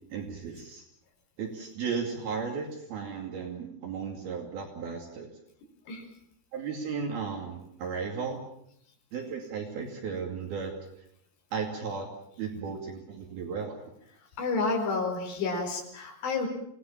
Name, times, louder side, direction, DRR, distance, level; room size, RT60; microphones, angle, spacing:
voice 1, 0.1-0.8 1.4-5.3 6.5-8.4 9.1-10.7 11.5-12.1 12.4-13.8, right 5 dB, 55° right, 2 dB, 4.1 m, -35 dB
voice 2, 14.4-16.5, left 3 dB, 60° left, 1 dB, 6.7 m, -30 dB
26.5 x 19.0 x 7.3 m, 0.74 s
omnidirectional pair, 5.5 m